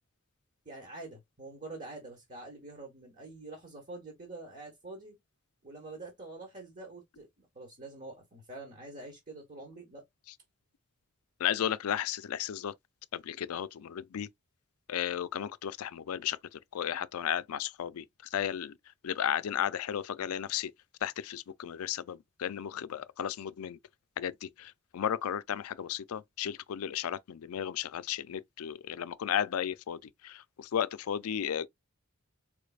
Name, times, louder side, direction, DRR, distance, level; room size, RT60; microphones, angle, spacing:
voice 1, 0.6-5.2 5.6-10.0, right 2 dB, 35° right, 1.2 m, -46 dB
voice 2, 11.4-12.7 13.1-14.3 14.9-16.4 16.7-18.0 18.3-18.7 19.0-20.7 21.0-23.8 24.2-30.0 30.2-31.7, left 9 dB, 85° left, 0.4 m, -34 dB
4.6 x 3.2 x 2.3 m
head